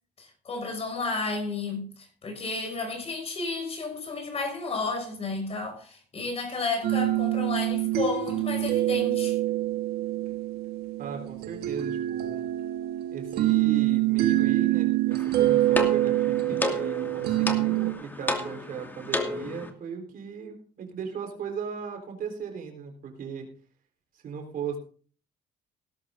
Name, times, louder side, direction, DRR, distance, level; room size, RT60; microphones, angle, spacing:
voice 1, 0.2-9.4, left 3 dB, 40° left, 5.9 m, -32 dB
sound 1, 6.8-17.9, right 16 dB, 75° right, 1.6 m, -26 dB
voice 2, 11.0-12.4 13.1-23.5 24.2-24.8, right 6 dB, 60° right, 4.1 m, -37 dB
sound 2, 15.1-19.7, left 2 dB, 10° left, 2.2 m, -32 dB
18.0 x 12.5 x 2.7 m
cardioid pair, 110°, 17 cm